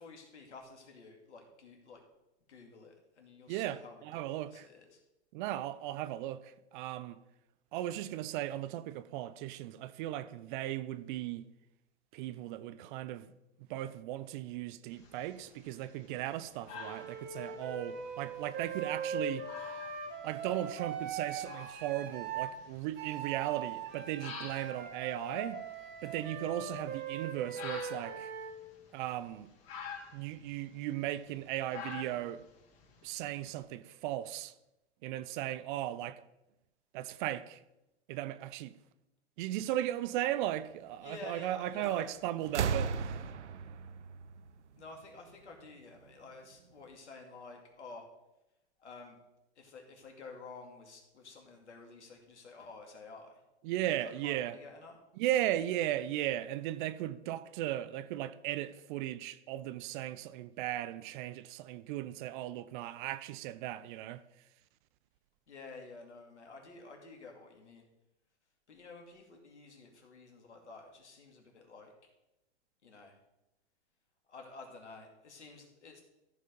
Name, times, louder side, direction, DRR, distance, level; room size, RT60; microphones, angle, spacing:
voice 1, 0.0-2.0 2.5-5.0 41.0-42.1 44.7-48.1 48.8-49.2 49.6-53.3 54.0-55.0 65.5-67.9 68.7-71.9 72.8-73.2 74.3-76.0, left 3 dB, 80° left, 2.6 m, -51 dB
voice 2, 3.5-4.7 5.3-7.2 7.7-11.5 12.1-13.3 13.7-19.5 20.2-25.6 26.0-28.3 28.9-29.5 30.1-32.4 33.0-34.5 35.0-36.2 36.9-37.6 38.1-38.8 39.4-43.2 53.6-54.6 55.2-64.2, right 13 dB, 45° right, 0.7 m, -37 dB
sound 1, 14.9-33.6, left 5 dB, 45° left, 3.4 m, -51 dB
Wind instrument woodwind instrument, 16.7-22.5 23.0-28.6, right 6 dB, 30° right, 1.6 m, -41 dB
sound 2, 41.8-42.1 42.4-45.2 46.3-46.4, right 6 dB, 90° right, 0.6 m, -36 dB
14.0 x 5.1 x 5.3 m
hypercardioid pair, 110°, 34 cm